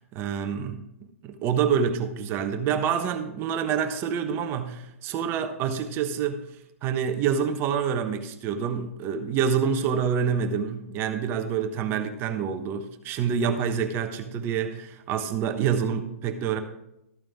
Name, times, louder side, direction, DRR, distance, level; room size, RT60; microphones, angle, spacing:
voice 1, 0.1-0.8 1.2-6.5 6.8-16.6, right 7 dB, 30° right, 8 dB, 1.1 m, -27 dB
13.5 x 8.8 x 3.6 m, 0.84 s
hypercardioid pair, 120°, 8 cm